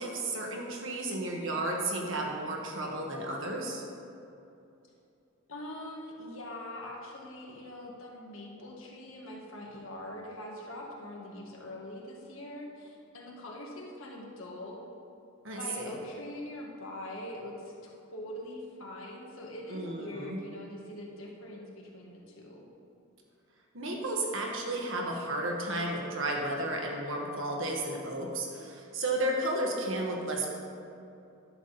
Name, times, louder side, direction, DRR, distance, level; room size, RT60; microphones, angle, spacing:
voice 1, 0.0-3.8 15.4-16.0 19.7-20.4 23.7-30.6, right 1 dB, 65° right, 0 dB, 1.5 m, -33 dB
voice 2, 5.5-14.8 15.5-22.7, left 1 dB, 80° left, -1 dB, 1.6 m, -43 dB
10.5 x 7.3 x 4.1 m, 2.7 s
head